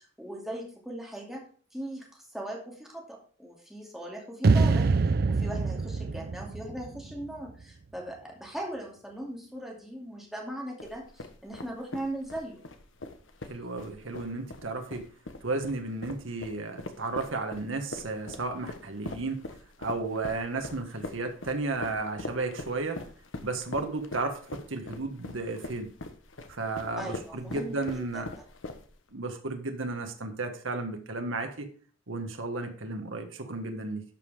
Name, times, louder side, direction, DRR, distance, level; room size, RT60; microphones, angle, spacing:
voice 1, 0.0-1.4 1.7-4.9 5.3-12.6 27.0-28.2, right 1 dB, ahead, -1 dB, 2.4 m, -39 dB
sound 1, 4.4-7.6, right 3 dB, 50° right, 0.5 m, -25 dB
sound 2, 10.8-29.1, left 2 dB, 75° left, 1.2 m, -42 dB
voice 2, 13.5-15.1 15.4-19.4 19.8-23.0 23.4-25.9 26.5-28.3 29.1-31.7 32.1-34.0, right 3 dB, 80° right, 5 dB, 1.4 m, -33 dB
12.0 x 5.5 x 4.9 m, 0.43 s
head